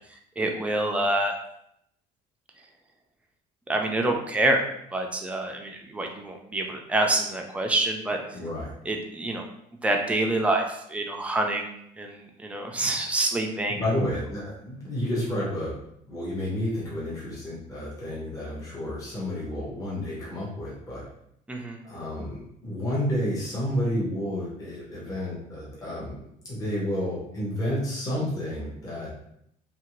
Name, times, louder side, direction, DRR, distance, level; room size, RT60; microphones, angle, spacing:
voice 1, 0.4-1.3 3.7-4.6 4.9-8.2 8.9-9.4 9.8-11.7 12.0-13.8 21.5-21.8, right 2 dB, 10° right, 2 dB, 0.3 m, -26 dB
voice 2, 8.3-8.7 13.7-15.8 16.1-21.0 21.8-29.1, left 1 dB, 25° left, -6 dB, 0.8 m, -30 dB
2.8 x 2.5 x 2.9 m, 0.74 s
cardioid pair, 165°, 14 cm